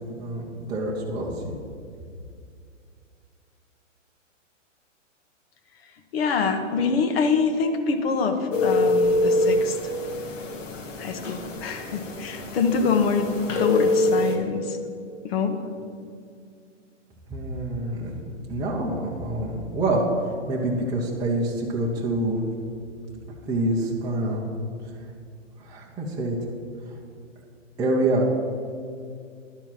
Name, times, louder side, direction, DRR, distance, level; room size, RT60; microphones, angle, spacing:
voice 1, 0.1-1.3 17.3-18.2 18.5-20.0 20.5-22.4 23.5-24.5 25.6-26.4 27.8-28.3, right 1 dB, 10° right, -4 dB, 0.7 m, -26 dB
voice 2, 6.1-9.9 11.0-13.3 13.6-14.8 15.2-15.8, left 5 dB, 50° left, 7 dB, 1.1 m, -25 dB
sound 1, 8.5-14.3, left 2 dB, 75° left, 1.5 m, -25 dB
11.0 x 4.5 x 7.3 m, 2.3 s
hypercardioid pair, 145°, 38 cm